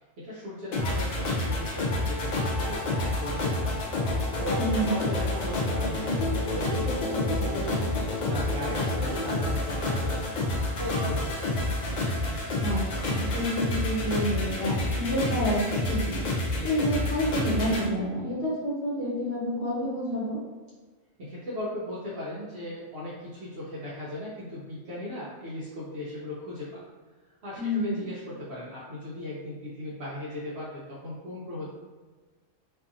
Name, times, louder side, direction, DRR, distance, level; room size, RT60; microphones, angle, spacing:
voice 1, 0.2-3.7 4.4-7.8 8.2-10.3 10.8-11.6 21.2-26.8 27.4-31.7, left 1 dB, 60° right, -8 dB, 0.8 m, -37 dB
sound 1, 0.7-17.9, left 1 dB, 70° left, 0.4 m, -28 dB
voice 2, 4.6-5.0 12.6-16.2 16.6-20.4 27.6-28.0, equal, 10° left, -12 dB, 1.1 m, -29 dB
2.6 x 2.5 x 2.5 m, 1.4 s
omnidirectional pair, 1.4 m